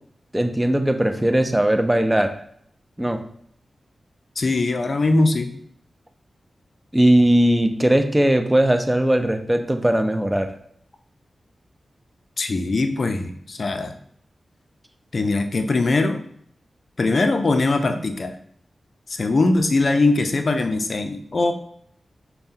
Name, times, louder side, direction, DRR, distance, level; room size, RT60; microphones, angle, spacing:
voice 1, 0.3-2.4 3.0-3.2 6.9-10.5, right 1 dB, 15° right, 6 dB, 0.5 m, -19 dB
voice 2, 4.4-5.5 12.4-14.0 15.1-16.2 17.0-18.3 19.1-21.5, left 2 dB, 60° left, 6 dB, 0.4 m, -21 dB
5.4 x 2.2 x 2.7 m, 0.66 s
cardioid pair, 45°, 0 cm